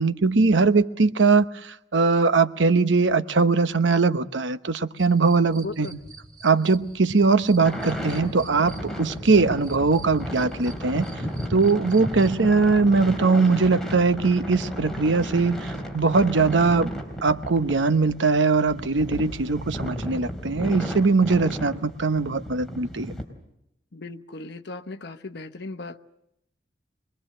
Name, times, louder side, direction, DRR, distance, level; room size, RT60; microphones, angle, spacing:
voice 1, 0.0-5.9 6.4-11.1 11.5-16.9 17.2-23.1, right 4 dB, 85° right, 0.9 m, -21 dB
sound 1, 5.0-12.5, equal, 25° right, 2.4 m, -39 dB
voice 2, 5.6-5.9 23.9-26.0, left 3 dB, 65° left, 0.9 m, -37 dB
sound 2, 7.6-23.2, equal, ahead, 4.0 m, -34 dB
25.0 x 21.5 x 7.7 m
head